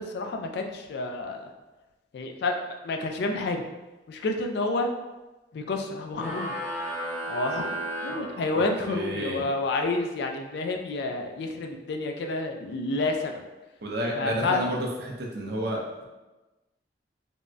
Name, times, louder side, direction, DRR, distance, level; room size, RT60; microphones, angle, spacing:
voice 1, 0.0-1.5 2.1-2.6 2.8-3.6 4.1-4.9 5.5-6.5 7.3-7.7 8.0-13.4 14.2-14.6, left 3 dB, 60° left, 4 dB, 0.3 m, -29 dB
sound 1, 6.1-9.0, right 1 dB, 5° left, 0.6 m, -34 dB
voice 2, 8.8-9.4 13.8-16.0, equal, 60° right, -1 dB, 0.5 m, -30 dB
3.4 x 2.1 x 2.5 m, 1.1 s
head